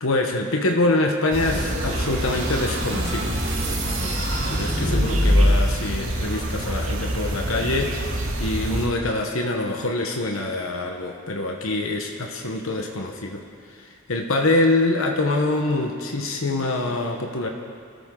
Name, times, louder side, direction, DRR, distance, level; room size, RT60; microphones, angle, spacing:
voice 1, 0.0-3.4 4.5-7.9 8.4-17.5, left 2 dB, 85° left, 2 dB, 1.2 m, -25 dB
sound 1, 1.3-8.9, right 1 dB, 90° right, 2.3 m, -28 dB
sound 2, 1.4-5.8, equal, 70° right, 4.2 m, -24 dB
25.0 x 14.0 x 3.9 m, 2.3 s
head